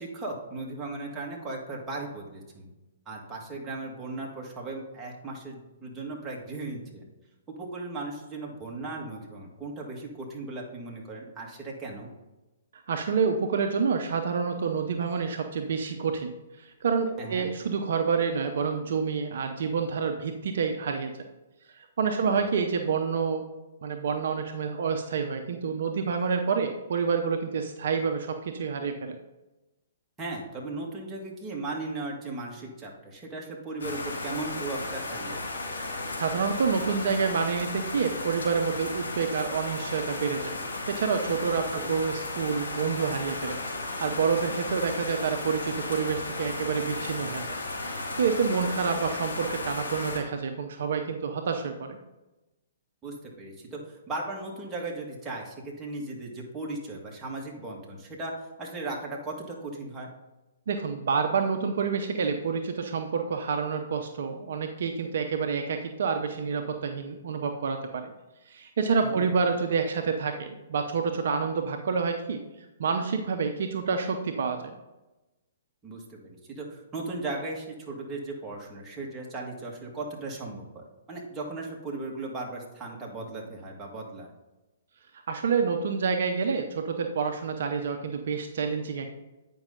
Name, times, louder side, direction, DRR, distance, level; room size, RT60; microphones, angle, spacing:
voice 1, 0.0-2.7 3.1-7.0 7.5-12.1 17.2-17.5 22.2-22.5 30.2-35.4 41.7-42.0 48.5-48.7 53.0-58.3 58.6-60.1 69.0-69.4 75.8-84.3, right 2 dB, 15° right, -2 dB, 1.8 m, -37 dB
voice 2, 12.9-16.3 16.6-21.1 21.7-23.4 23.8-29.1 36.2-40.6 40.9-43.6 44.0-47.4 47.8-52.0 60.7-68.1 68.5-72.4 72.8-74.7 85.3-89.1, right 5 dB, 60° right, 5 dB, 0.7 m, -28 dB
sound 1, 33.8-50.2, left 2 dB, 70° left, 2.5 m, -35 dB
8.8 x 5.4 x 3.8 m, 1.0 s
figure-of-eight pair, 125°, 0 cm